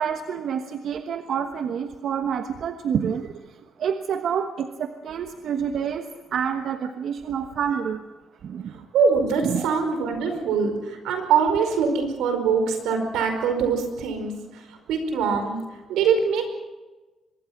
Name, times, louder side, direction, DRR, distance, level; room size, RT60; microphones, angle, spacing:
voice 1, 0.0-3.3 3.8-8.0 8.4-8.7 9.4-9.7, right 7 dB, 65° right, 7 dB, 1.2 m, -28 dB
voice 2, 8.9-14.6 14.9-15.6 15.9-16.4, right 5 dB, 90° right, 6 dB, 5.0 m, -23 dB
24.5 x 22.5 x 6.0 m, 1.2 s
cardioid pair, 90°, 0 cm